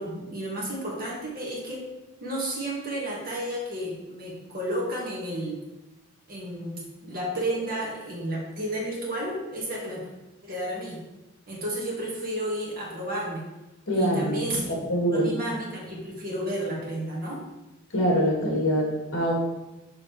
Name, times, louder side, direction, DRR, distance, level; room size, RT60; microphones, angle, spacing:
voice 1, 0.0-1.9 2.2-5.6 6.3-10.1 10.4-11.0 11.5-13.4 13.9-14.7 15.1-17.4, right 1 dB, 45° right, -4 dB, 1.8 m, -32 dB
voice 2, 13.9-14.4 14.7-15.3 17.9-19.3, equal, 65° left, -1 dB, 1.8 m, -24 dB
6.7 x 5.6 x 3.2 m, 1.0 s
head